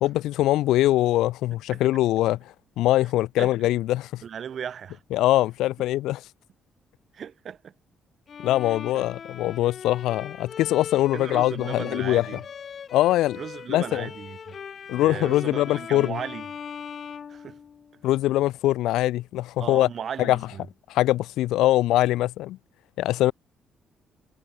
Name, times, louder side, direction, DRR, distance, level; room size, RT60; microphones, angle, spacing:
voice 1, 0.0-2.4 2.8-4.2 5.1-6.2 8.4-12.4 12.9-13.4 13.7-14.1 14.9-16.2 18.0-19.9 20.2-20.4 20.9-22.6 23.0-23.3, left 15 dB, 90° left, 0.9 m, -23 dB
voice 2, 4.2-5.0 7.1-7.7 8.7-9.1 11.1-12.4 13.4-14.6 15.0-16.5 17.3-17.6 19.6-20.6, right 8 dB, 55° right, 3.8 m, -36 dB
Bowed string instrument, 8.3-18.1, left 7 dB, 50° left, 1.9 m, -40 dB
cardioid pair, 90°, 0 cm